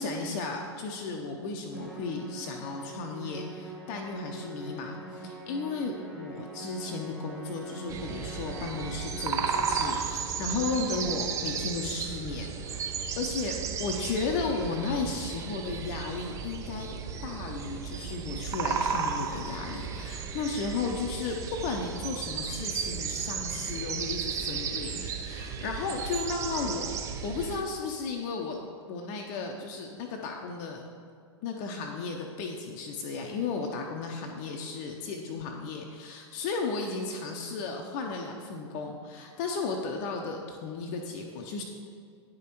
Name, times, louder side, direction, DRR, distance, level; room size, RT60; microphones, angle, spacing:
voice 1, 0.0-16.9 17.2-26.9 27.2-28.6 28.9-30.8 31.4-41.6, left 4 dB, 40° left, 1 dB, 0.6 m, -34 dB
Musical instrument, 1.7-10.2, right 2 dB, ahead, 1.1 m, -43 dB
sound 1, 7.9-27.6, right 6 dB, 20° right, 0.4 m, -34 dB
9.6 x 5.0 x 3.0 m, 2.2 s
figure-of-eight pair, 100°, 15 cm